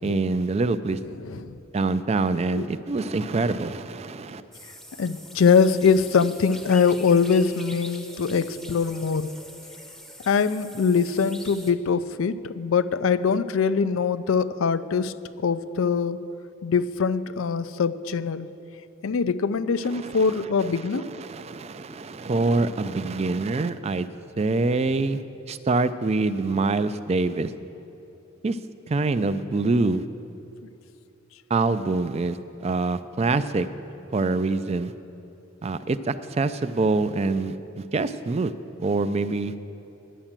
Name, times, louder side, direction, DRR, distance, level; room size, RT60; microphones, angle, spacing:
voice 1, 0.0-1.0 1.7-4.4 19.9-20.9 21.2-24.1 24.4-25.2 25.5-27.5 28.4-28.6 28.9-30.0 31.5-32.4 32.6-33.7 34.1-34.9 35.6-38.5 38.8-39.5, right 3 dB, 30° right, 13 dB, 0.4 m, -25 dB
voice 2, 1.2-1.6 2.5-2.7 5.0-9.3 10.3-16.2 16.6-18.5 19.0-21.1, left 5 dB, 85° left, 13 dB, 0.4 m, -23 dB
sound 1, 4.5-11.7, equal, ahead, 0.7 m, -44 dB
10.0 x 9.9 x 7.3 m, 2.9 s
head